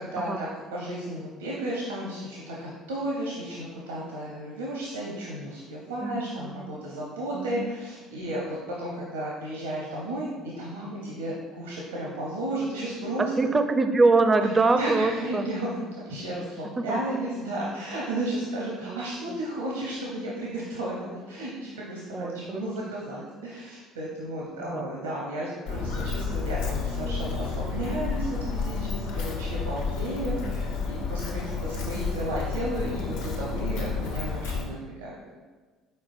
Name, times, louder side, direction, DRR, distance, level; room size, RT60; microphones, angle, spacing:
voice 1, 0.0-10.3 10.6-13.3 14.7-35.2, right 1 dB, 80° right, -4 dB, 0.7 m, -33 dB
voice 2, 6.0-6.7 7.3-7.7 13.2-15.5 16.9-17.0 18.9-19.4 22.1-22.6 24.6-24.9 30.4-30.6, right 3 dB, 25° right, 7 dB, 0.4 m, -24 dB
Walk footsteps, 25.7-34.6, left 4 dB, 70° left, 0.6 m, -31 dB
4.4 x 4.4 x 2.5 m, 1.4 s
hypercardioid pair, 60°, 0 cm